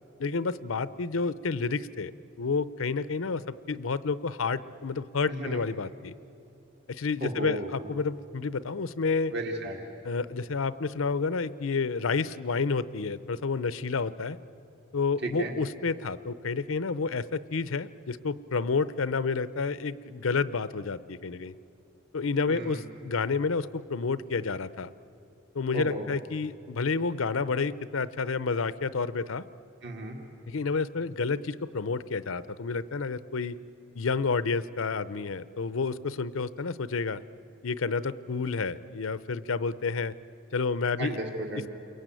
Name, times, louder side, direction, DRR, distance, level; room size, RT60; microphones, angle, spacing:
voice 1, 0.2-2.1 2.4-6.1 6.9-9.3 10.0-14.4 14.9-21.5 22.1-24.9 25.5-29.4 30.5-33.6 34.0-37.2 37.6-40.1 40.5-41.1, left 4 dB, 80° left, 15 dB, 0.7 m, -30 dB
voice 2, 5.3-5.6 7.2-7.7 9.3-9.8 15.2-15.5 22.5-22.8 25.7-26.1 29.8-30.2 41.0-41.7, right 1 dB, 55° right, 1 dB, 2.1 m, -34 dB
29.0 x 22.5 x 9.1 m, 2.9 s
head